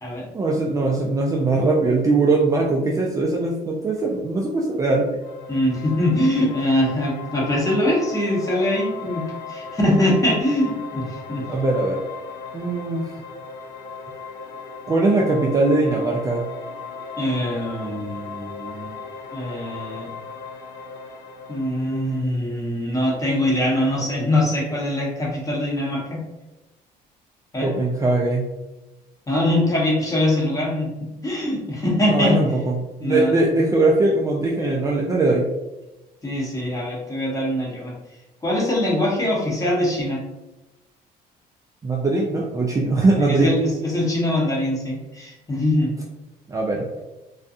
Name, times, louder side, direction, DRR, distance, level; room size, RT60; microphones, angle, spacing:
voice 1, 0.3-5.1 11.5-12.0 12.5-13.1 14.9-16.4 27.6-28.5 32.1-32.7 33.0-35.5 41.8-43.5 46.5-46.8, right 2 dB, 20° right, -2 dB, 0.3 m, -20 dB
sound 1, 5.2-22.2, left 4 dB, 90° left, 0.6 m, -37 dB
voice 2, 5.5-11.4 17.2-18.9 19.3-20.1 21.5-26.2 27.5-27.7 29.3-32.4 33.0-33.4 36.2-37.9 38.4-40.2 43.2-45.9, left 1 dB, 20° left, -4 dB, 0.8 m, -23 dB
2.4 x 2.2 x 2.6 m, 1.0 s
cardioid pair, 110°, 17 cm